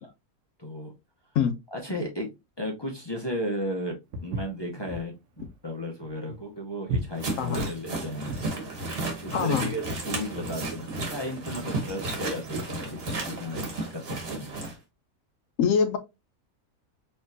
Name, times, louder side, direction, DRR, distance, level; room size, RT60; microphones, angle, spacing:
voice 1, 0.6-0.9 1.7-2.3 2.6-4.0 4.2-5.1 5.6-14.5, equal, 30° left, 0.5 m, -34 dB
Walk footsteps, 4.1-8.6, right 2 dB, 65° right, 1.0 m, -35 dB
sound 1, 7.2-14.7, right 2 dB, 45° right, 1.3 m, -33 dB
voice 2, 9.3-9.7 15.6-16.0, left 7 dB, 70° left, 1.0 m, -24 dB
4.3 x 3.0 x 2.6 m
omnidirectional pair, 1.5 m